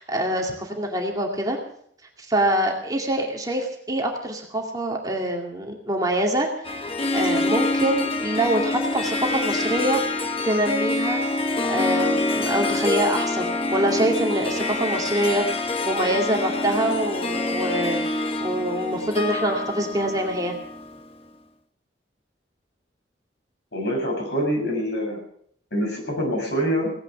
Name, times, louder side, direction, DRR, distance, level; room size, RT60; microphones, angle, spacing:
voice 1, 0.0-1.6 2.2-6.7 7.1-20.5, right 1 dB, 20° right, 1 dB, 2.3 m, -25 dB
Harp, 6.6-21.1, left 2 dB, 30° left, 1.2 m, -26 dB
voice 2, 23.7-25.2 25.7-26.9, equal, 65° left, 0 dB, 6.9 m, -25 dB
17.5 x 10.5 x 7.3 m, 0.65 s
head